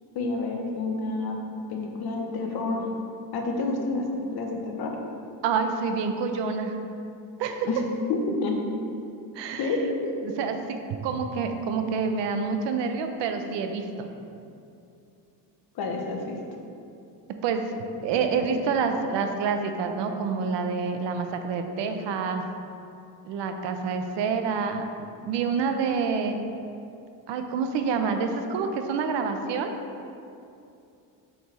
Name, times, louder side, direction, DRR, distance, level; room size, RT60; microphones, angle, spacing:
voice 1, 0.1-1.4 1.7-2.9 3.3-4.0 4.3-4.9 7.7-7.8 8.1-8.6 9.6-10.1 15.7-16.4, left 3 dB, 60° left, 2 dB, 1.0 m, -29 dB
voice 2, 5.4-6.8 7.4-7.7 9.4-9.8 10.2-14.1 17.4-17.6 18.0-22.4 23.2-24.8 25.2-26.4 27.3-29.7, right 5 dB, 75° right, 6 dB, 0.7 m, -27 dB
5.8 x 4.7 x 4.2 m, 2.6 s
cardioid pair, 110°, 43 cm